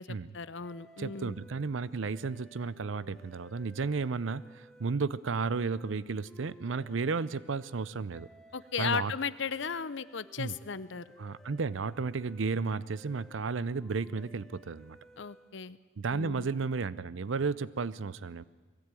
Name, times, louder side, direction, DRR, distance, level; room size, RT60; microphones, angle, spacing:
voice 1, 0.0-1.4 8.5-11.0 15.2-15.8 16.1-16.5, left 6 dB, 65° left, 16 dB, 0.7 m, -36 dB
sound 1, 0.6-15.7, right 1 dB, 5° left, 0.9 m, -58 dB
voice 2, 1.0-8.3 8.8-9.1 10.4-10.5 11.2-15.0 16.0-18.4, right 4 dB, 75° right, 19 dB, 0.6 m, -33 dB
20.5 x 16.5 x 9.1 m, 1.4 s
head